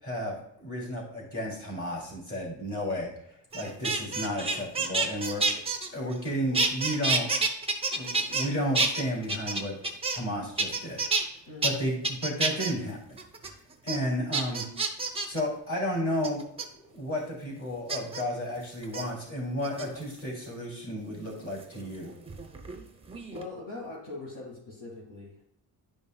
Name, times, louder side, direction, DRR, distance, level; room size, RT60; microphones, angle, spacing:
voice 1, 0.0-3.1 3.5-5.4 5.9-7.3 7.9-9.8 10.1-11.0 11.6-13.2 13.8-14.6 15.2-16.4 16.9-22.1, equal, 30° left, -3 dB, 2.9 m, -32 dB
sound 1, 3.5-6.3 6.5-8.5 8.7-10.3 10.6-11.2 11.6-11.7 12.0-12.7 13.2-13.5 13.9-14.0 14.3-15.4 16.2-16.6 17.9-18.2 18.8-19.0 19.6-20.2 21.6-22.8 23.1-23.5, right 3 dB, 15° right, 0.7 m, -29 dB
voice 2, 11.5-11.8 23.3-25.4, left 2 dB, 45° left, -6 dB, 2.0 m, -41 dB
10.5 x 5.2 x 2.3 m, 0.72 s
wide cardioid pair, 145°, 43 cm